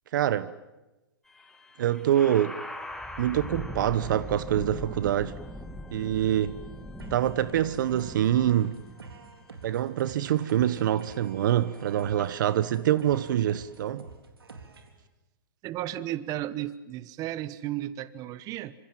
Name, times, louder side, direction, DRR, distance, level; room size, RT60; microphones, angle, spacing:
voice 1, 0.1-0.5 1.8-2.6 3.2-5.3 5.9-6.6 7.1-8.8 9.6-14.0, right 11 dB, 55° right, 1.0 m, -25 dB
sound 1, 1.3-12.2, left 1 dB, 5° left, 2.3 m, -42 dB
sound 2, 7.0-15.0, right 4 dB, 85° right, 3.7 m, -48 dB
voice 2, 15.6-18.7, right 13 dB, 30° right, 1.1 m, -34 dB
27.0 x 25.5 x 7.6 m
hypercardioid pair, 130°, 12 cm